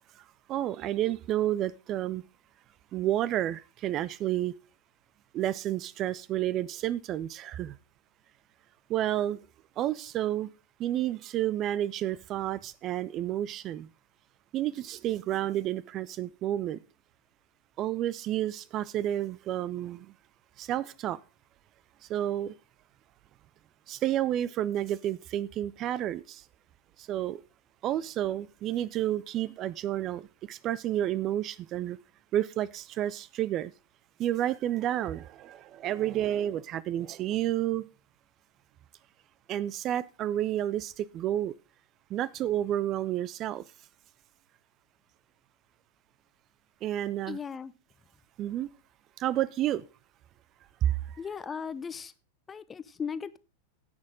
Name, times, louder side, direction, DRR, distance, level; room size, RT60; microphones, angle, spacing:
voice 1, 0.5-2.2 2.9-4.5 5.3-7.8 8.9-9.4 9.8-10.5 10.8-13.9 14.5-16.8 17.8-20.1 20.6-21.2 22.1-22.5 23.9-26.4 27.0-27.4 27.8-32.0 32.3-33.7 34.2-37.9 39.5-41.5 42.1-43.6 46.8-47.4 48.4-48.7 49.2-49.8 50.8-51.2, right 12 dB, 35° right, 0.4 m, -30 dB
voice 2, 47.3-47.7 51.2-52.1 52.5-53.4, left 6 dB, 20° left, 0.7 m, -37 dB
16.5 x 6.3 x 3.7 m
figure-of-eight pair, 90°, 0 cm